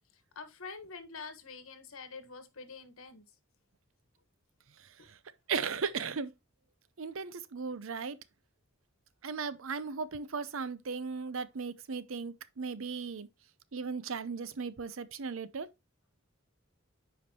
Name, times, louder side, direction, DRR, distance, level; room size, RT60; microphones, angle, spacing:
voice 1, 0.3-3.2, left 4 dB, 85° left, 1.4 m, -46 dB
voice 2, 5.5-6.3 7.0-8.2 9.2-13.3 13.7-15.7, right 5 dB, 75° right, 0.7 m, -36 dB
9.5 x 5.1 x 2.9 m
head